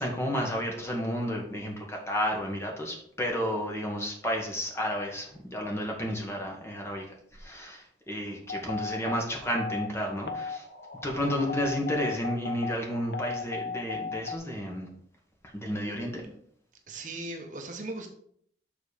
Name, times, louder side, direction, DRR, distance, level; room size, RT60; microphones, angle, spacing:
voice 1, 0.0-7.1 7.3-10.7 11.0-14.9 15.5-16.2, equal, 15° left, 0 dB, 1.3 m, -31 dB
sound 1, 8.5-14.4, left 5 dB, 60° left, 0.8 m, -36 dB
voice 2, 16.9-18.1, right 2 dB, 45° right, 3 dB, 1.0 m, -38 dB
7.1 x 4.1 x 5.0 m, 0.65 s
head